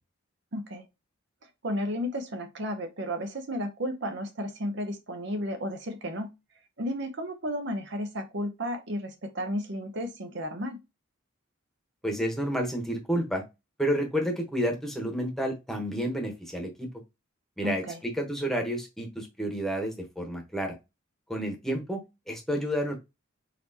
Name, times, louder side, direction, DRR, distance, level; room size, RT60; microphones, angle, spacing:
voice 1, 0.5-0.8 1.6-6.3 6.8-10.8 17.6-18.0, equal, 55° right, 0.7 m, -33 dB
voice 2, 12.0-13.4 13.8-16.9 17.6-20.8 21.3-23.0, equal, ahead, 1.0 m, -30 dB
4.2 x 4.0 x 2.8 m
head